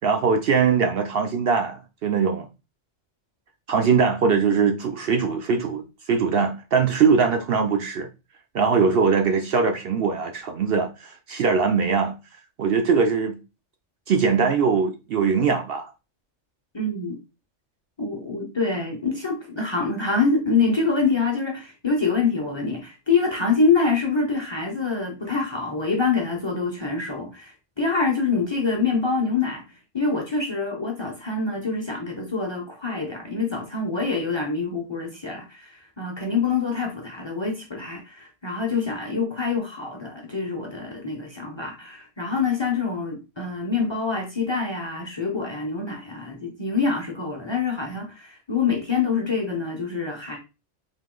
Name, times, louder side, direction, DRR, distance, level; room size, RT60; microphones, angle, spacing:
voice 1, 0.0-2.5 3.7-8.1 8.5-12.1 12.6-13.4 14.1-15.9, right 5 dB, 60° right, 0.7 m, -21 dB
voice 2, 16.7-17.2 18.0-29.6 29.9-50.4, left 4 dB, 25° left, 0.7 m, -25 dB
3.7 x 2.8 x 3.8 m
omnidirectional pair, 1.2 m